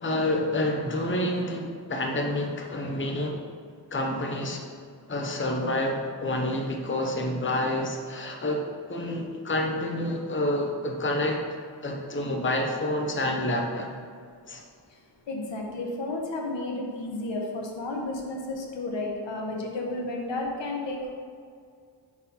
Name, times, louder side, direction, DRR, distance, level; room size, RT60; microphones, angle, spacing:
voice 1, 0.0-3.4 3.9-4.6 5.1-11.4 11.8-13.9 14.5-14.6, left 1 dB, 25° left, 2 dB, 0.8 m, -28 dB
voice 2, 15.3-21.1, left 2 dB, 85° left, 0 dB, 1.1 m, -32 dB
5.6 x 4.7 x 5.4 m, 2.2 s
wide cardioid pair, 80°, 43 cm